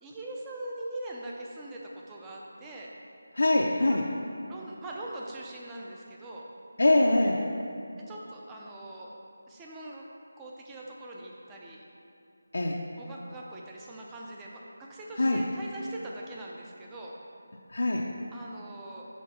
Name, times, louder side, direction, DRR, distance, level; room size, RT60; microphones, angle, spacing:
voice 1, 0.0-2.9 4.5-6.4 8.1-9.1 9.5-10.1 10.4-11.8 13.0-17.2 18.3-19.1, right 1 dB, 10° right, -3 dB, 0.4 m, -42 dB
voice 2, 3.3-4.1 6.8-7.4 12.5-12.8 15.2-15.5 17.7-18.1, left 2 dB, 80° left, -2 dB, 0.5 m, -23 dB
6.4 x 3.3 x 5.5 m, 2.5 s
figure-of-eight pair, 175°, 0 cm